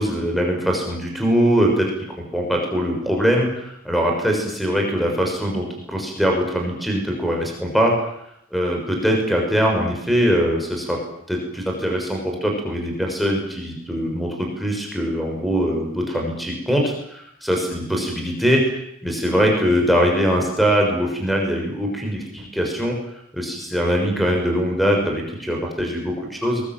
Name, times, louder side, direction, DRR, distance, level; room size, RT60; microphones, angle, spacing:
voice 1, 0.0-1.9 2.3-7.9 8.5-11.0 11.3-18.8 19.0-22.9 23.3-26.6, equal, ahead, -1 dB, 6.4 m, -22 dB
23.0 x 22.0 x 9.3 m, 0.75 s
head